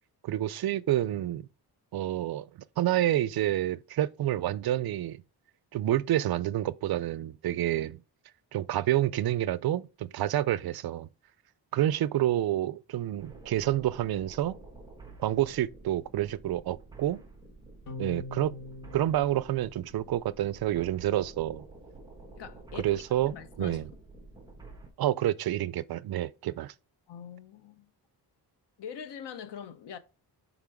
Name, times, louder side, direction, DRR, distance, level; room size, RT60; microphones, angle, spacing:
voice 1, 0.2-1.5 1.9-2.5 2.8-5.2 5.7-8.0 8.5-11.1 11.7-14.5 15.2-17.2 18.0-18.5 18.9-21.6 22.7-23.9 25.0-26.7, right 13 dB, 65° right, 0.5 m, -28 dB
sound 1, 13.2-24.9, right 2 dB, 10° right, 1.4 m, -50 dB
sound 2, 17.9-20.5, left 3 dB, 55° left, 1.5 m, -44 dB
voice 2, 22.4-22.9 23.3-23.9 27.1-27.9 28.8-30.0, left 8 dB, 90° left, 0.9 m, -43 dB
5.9 x 3.7 x 4.8 m
wide cardioid pair, 170°, 40 cm